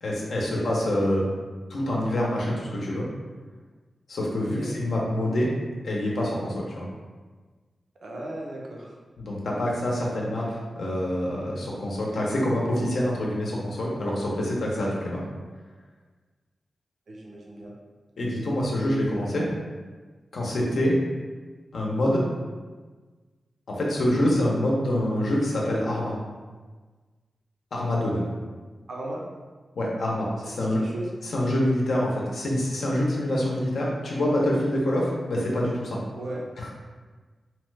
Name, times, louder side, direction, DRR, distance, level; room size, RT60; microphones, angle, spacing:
voice 1, 0.0-1.2 1.7-3.1 4.1-5.5 5.8-6.9 9.2-15.2 18.2-19.5 20.3-21.0 21.7-22.2 23.7-26.1 27.7-28.3 29.8-30.8 31.2-36.0 36.6-36.7, left 1 dB, 80° left, -3 dB, 0.6 m, -26 dB
voice 2, 4.4-4.7 8.0-8.9 17.1-17.7 28.9-29.2 30.5-31.1 36.2-36.4, right 1 dB, 65° right, -2 dB, 0.5 m, -36 dB
2.8 x 2.2 x 3.2 m, 1.4 s
wide cardioid pair, 110°, 0 cm